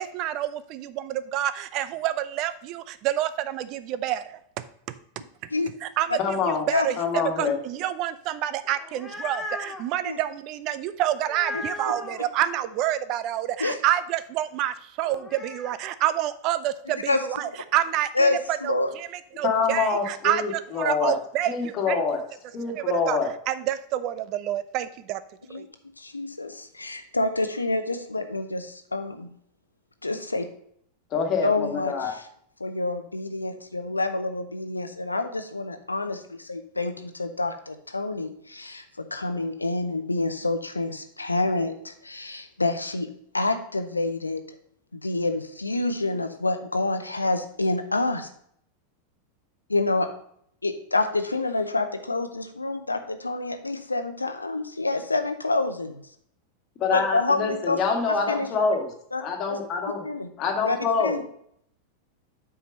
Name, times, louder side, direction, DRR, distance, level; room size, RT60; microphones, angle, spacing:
voice 1, 0.0-4.4 5.8-6.1 6.5-6.9 7.4-18.3 18.6-19.1 19.4-22.0 22.7-23.2 23.5-25.2 25.5-25.7, right 12 dB, 40° right, 13 dB, 0.5 m, -28 dB
voice 2, 6.2-6.6 7.0-7.5 19.4-21.2 21.5-22.2 22.5-23.3 31.1-32.2 56.8-58.9 59.2-60.0 60.4-61.2, left 5 dB, 35° left, 3 dB, 1.7 m, -26 dB
sound 1, 8.7-9.9 11.3-12.2 15.0-15.8, left 1 dB, 5° left, 1.1 m, -36 dB
voice 3, 18.1-18.9 25.5-25.7 26.0-29.3 30.0-30.5 31.4-32.2 32.6-43.1 43.3-44.4 44.9-48.3 49.7-50.1 50.6-56.0 56.9-57.8 58.1-58.5 59.1-59.2 59.5-59.6 60.0-60.3 60.6-60.8 61.0-61.2, left 2 dB, 80° left, 8 dB, 0.6 m, -27 dB
8.1 x 4.7 x 5.3 m, 0.66 s
figure-of-eight pair, 90°, 0 cm